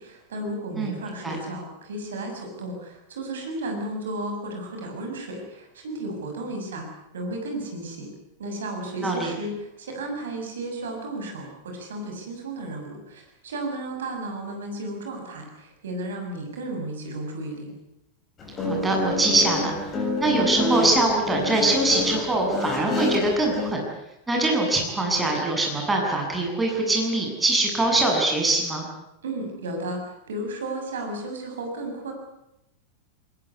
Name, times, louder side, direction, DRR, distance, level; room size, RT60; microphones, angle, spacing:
voice 1, 0.0-6.9 7.1-8.1 8.4-17.7 29.2-32.1, right 1 dB, 65° right, 3 dB, 6.9 m, -33 dB
Guitar, 18.4-23.7, left 2 dB, 25° left, 7.3 m, -27 dB
voice 2, 18.6-19.8 20.2-23.8 24.3-28.9, right 2 dB, 10° right, 0 dB, 7.8 m, -23 dB
21.5 x 20.5 x 9.7 m, 0.86 s
figure-of-eight pair, 90°, 0 cm